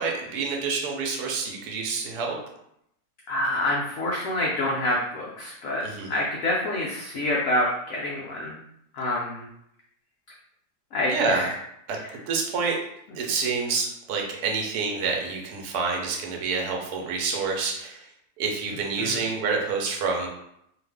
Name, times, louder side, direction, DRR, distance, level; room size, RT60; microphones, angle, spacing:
voice 1, 0.0-2.4 5.8-6.1 11.1-11.5 11.9-12.0 12.3-12.8 13.1-18.1 18.4-20.3, right 4 dB, 65° right, 0 dB, 1.1 m, -27 dB
voice 2, 3.3-8.6 8.9-9.5 10.9-11.5 19.0-19.2, left 1 dB, 70° left, -4 dB, 0.8 m, -27 dB
2.8 x 2.5 x 3.4 m, 0.76 s
omnidirectional pair, 2.0 m